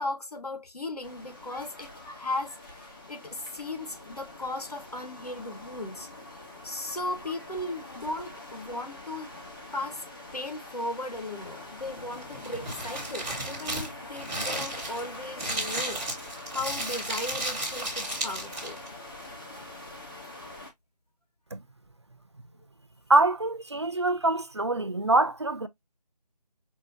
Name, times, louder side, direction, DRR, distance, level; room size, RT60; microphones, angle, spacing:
voice 1, 0.0-9.3 9.7-10.0 10.3-18.8, left 2 dB, 65° left, 1.2 m, -37 dB
sound 1, 1.0-20.7, left 2 dB, 30° left, 1.1 m, -44 dB
Crumpling crinkling, 12.1-18.9, right 1 dB, 5° right, 0.8 m, -34 dB
voice 2, 23.1-25.7, right 2 dB, 40° right, 0.4 m, -24 dB
5.3 x 2.2 x 2.6 m
figure-of-eight pair, 160°, 21 cm